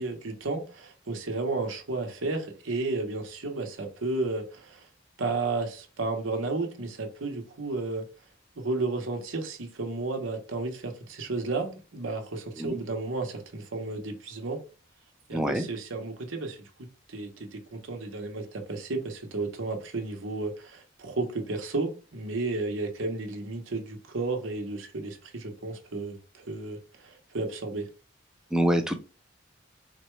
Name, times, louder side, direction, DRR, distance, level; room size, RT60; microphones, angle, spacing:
voice 1, 0.0-4.9 5.2-8.0 8.6-14.6 15.3-27.9, right 3 dB, 80° right, 0.9 m, -33 dB
voice 2, 15.3-15.7 28.5-29.0, equal, 5° right, 0.5 m, -26 dB
4.0 x 2.2 x 3.1 m
head